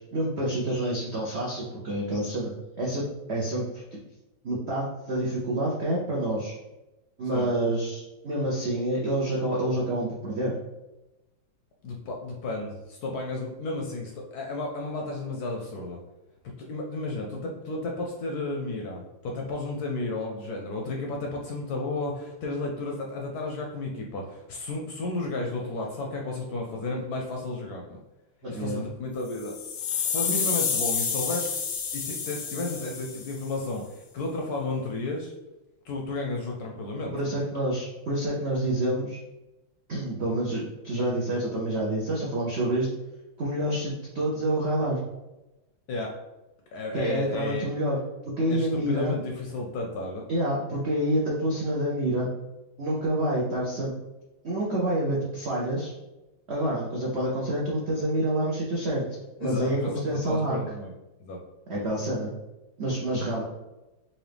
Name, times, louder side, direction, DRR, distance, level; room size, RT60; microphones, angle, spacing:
voice 1, 0.0-4.0 4.4-6.5 7.2-10.5 28.4-28.8 37.1-39.2 39.9-42.9 43.4-45.0 46.9-48.0 48.2-49.1 50.3-52.3 52.8-53.9 54.4-55.9 56.5-59.1 59.4-60.6 61.7-62.3 62.8-63.4, right 1 dB, 80° right, -4 dB, 0.5 m, -28 dB
voice 2, 11.8-16.0 16.4-28.0 28.5-31.5 31.9-35.3 35.8-37.2 45.9-46.1 46.7-47.7 48.5-50.2 59.4-60.9 61.2-61.4, left 2 dB, 70° left, 0 dB, 0.9 m, -33 dB
sound 1, 29.3-33.5, left 6 dB, 90° left, 0.7 m, -29 dB
4.1 x 2.5 x 3.3 m, 1.0 s
omnidirectional pair, 2.1 m